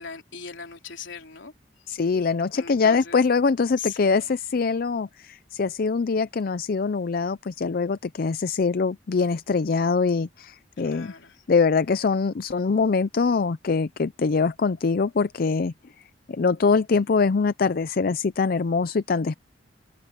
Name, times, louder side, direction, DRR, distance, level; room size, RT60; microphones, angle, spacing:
voice 1, 0.0-2.0 2.5-3.2 3.8-4.4 10.8-11.4, left 6 dB, 85° left, 3.4 m, -40 dB
voice 2, 1.9-11.1 11.5-15.7 16.3-19.3, left 4 dB, 50° left, 0.5 m, -23 dB
head